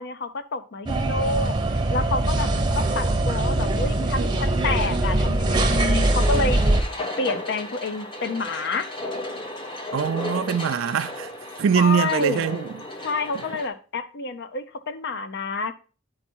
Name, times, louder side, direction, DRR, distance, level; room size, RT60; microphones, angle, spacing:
voice 1, 0.0-1.6 1.9-6.6 7.2-8.9 11.7-12.6 13.0-15.7, left 3 dB, 55° left, 0.7 m, -28 dB
sound 1, 0.9-6.8, right 2 dB, 20° right, 0.7 m, -22 dB
sound 2, 6.0-13.7, left 1 dB, 25° left, 1.0 m, -34 dB
voice 2, 9.9-11.3 11.6-12.8, right 7 dB, 60° right, 0.4 m, -23 dB
9.6 x 4.5 x 4.4 m
head